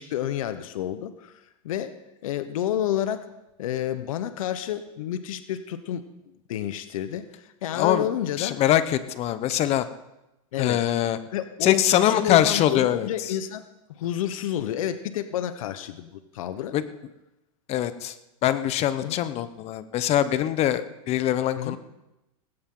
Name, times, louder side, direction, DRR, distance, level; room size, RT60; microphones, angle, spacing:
voice 1, 0.0-2.0 2.2-3.3 3.6-6.1 6.5-8.6 10.5-10.8 11.3-16.7 19.0-19.2 21.6-21.8, left 11 dB, 75° left, 11 dB, 1.1 m, -30 dB
voice 2, 7.7-8.1 8.4-9.9 10.6-11.2 11.6-13.1 16.7-16.8 17.7-18.1 18.4-21.8, left 12 dB, 35° left, 13 dB, 1.1 m, -23 dB
19.0 x 16.5 x 3.9 m, 0.94 s
supercardioid pair, 130°, 17 cm